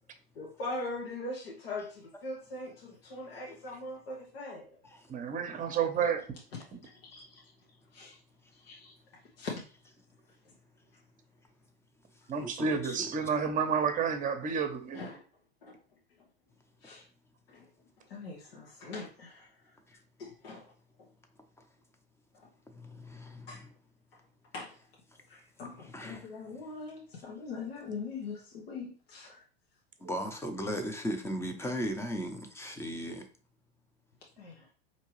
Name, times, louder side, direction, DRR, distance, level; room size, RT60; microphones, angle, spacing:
voice 1, 0.3-4.8 6.5-7.4 7.9-8.2 8.5-9.6 10.4-10.5 13.2-13.3 14.9-15.2 15.6-15.8 16.2-16.3 16.8-17.1 17.5-17.7 18.0-19.8 20.2-20.7 21.0-21.1 22.3-22.5 23.5-23.7 24.1-24.2 24.5-24.8 25.3-29.4 34.4-34.7, left 3 dB, 75° left, 1.1 m, -42 dB
voice 2, 5.1-6.2 12.3-15.0, right 6 dB, 25° right, 0.9 m, -30 dB
voice 3, 12.4-13.1 22.7-23.6 25.9-26.3 30.0-33.3, equal, 10° left, 0.8 m, -37 dB
4.4 x 2.9 x 3.1 m
hypercardioid pair, 95°, 30 cm